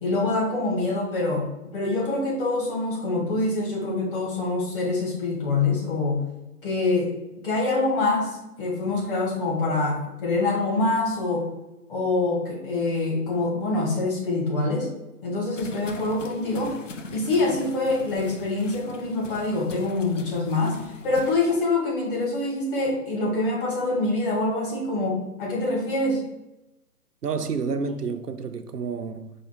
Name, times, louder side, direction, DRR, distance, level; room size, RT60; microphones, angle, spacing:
voice 1, 0.0-6.2 6.6-7.1 7.4-11.5 11.9-14.9 15.2-16.8 17.1-26.2, left 2 dB, 35° left, 1.6 m, -25 dB
sound 1, 15.5-21.4, left 3 dB, 55° left, 0.6 m, -41 dB
voice 2, 27.2-29.3, right 5 dB, 85° right, 0.6 m, -29 dB
4.8 x 2.4 x 4.6 m
figure-of-eight pair, 130°, 46 cm